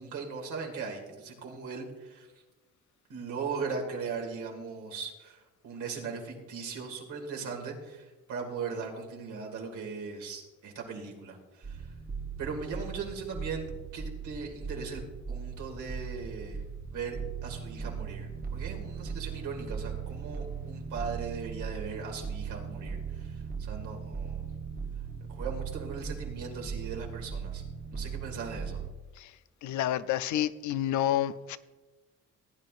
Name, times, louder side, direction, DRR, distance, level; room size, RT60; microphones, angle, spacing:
voice 1, 0.0-2.3 3.1-11.9 12.4-15.0 15.3-16.6 16.9-24.5 25.3-27.6 27.9-28.8, right 5 dB, 80° right, 1 dB, 2.3 m, -39 dB
sound 1, 11.6-28.9, right 6 dB, 30° right, 1.0 m, -38 dB
voice 2, 29.6-31.6, left 11 dB, 70° left, 14 dB, 0.6 m, -29 dB
17.0 x 9.1 x 2.5 m, 1.2 s
cardioid pair, 90°, 30 cm